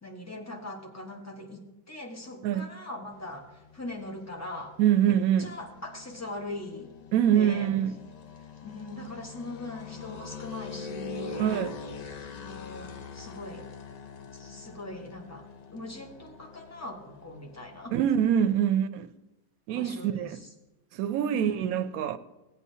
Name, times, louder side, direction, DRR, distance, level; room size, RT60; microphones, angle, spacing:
voice 1, 0.0-4.7 5.1-6.9 7.2-7.7 8.6-11.5 12.3-13.7 14.3-18.1 19.7-20.5 21.2-21.8, left 1 dB, 15° left, 1.0 m, -41 dB
sound 1, 3.1-18.7, left 5 dB, 80° left, 0.3 m, -44 dB
voice 2, 4.8-5.5 7.1-7.9 11.4-11.7 17.9-19.1 19.7-20.3 20.9-22.2, right 10 dB, 85° right, 1.0 m, -24 dB
17.0 x 8.4 x 2.7 m
omnidirectional pair, 1.5 m